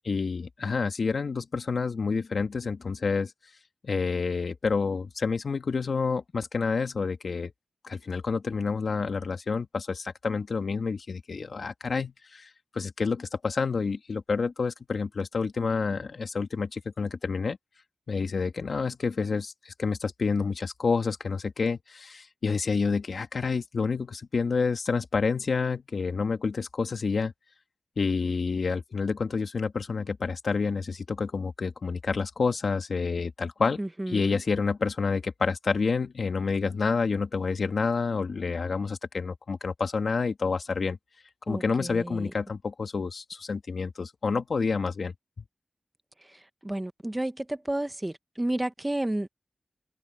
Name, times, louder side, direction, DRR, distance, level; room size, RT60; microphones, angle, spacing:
voice 1, 0.0-3.3 3.8-7.5 7.8-17.6 18.1-27.3 28.0-33.8 34.1-41.0 41.5-45.4, left 4 dB, 70° left, 2.6 m, -29 dB
voice 2, 33.8-34.4 41.5-42.3 46.6-49.4, right 1 dB, 20° right, 1.2 m, -31 dB
wide cardioid pair, 70°, 0 cm